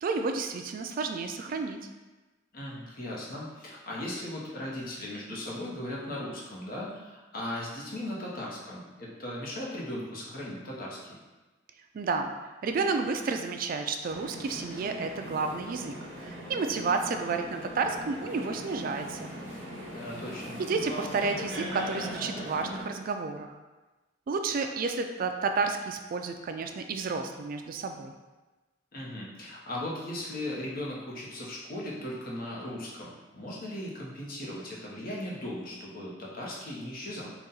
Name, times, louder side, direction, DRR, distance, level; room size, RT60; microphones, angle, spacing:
voice 1, 0.0-1.8 11.9-12.3 12.6-19.3 20.6-23.5 24.3-28.1, right 4 dB, 50° right, 6 dB, 0.3 m, -31 dB
voice 2, 2.5-11.2 19.9-20.6 28.9-37.3, left 1 dB, 50° left, -4 dB, 0.9 m, -38 dB
sound 1, 14.1-22.8, equal, 70° right, 1.0 m, -39 dB
4.0 x 2.4 x 3.8 m, 1.2 s
head